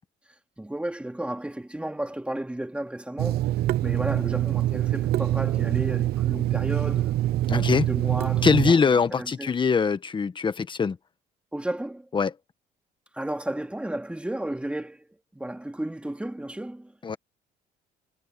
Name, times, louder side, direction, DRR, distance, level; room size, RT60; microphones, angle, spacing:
voice 1, 0.6-3.5 3.8-7.2 7.5-9.5 11.5-12.1 13.1-16.9, right 1 dB, 5° right, 2.9 m, -33 dB
Water tap faucet / Sink (filling or washing), 3.2-8.7, right 14 dB, 70° right, 0.8 m, -25 dB
voice 2, 7.5-7.9 8.4-11.0 12.1-12.3 17.0-17.2, left 5 dB, 30° left, 1.4 m, -22 dB
cardioid pair, 110°, 17 cm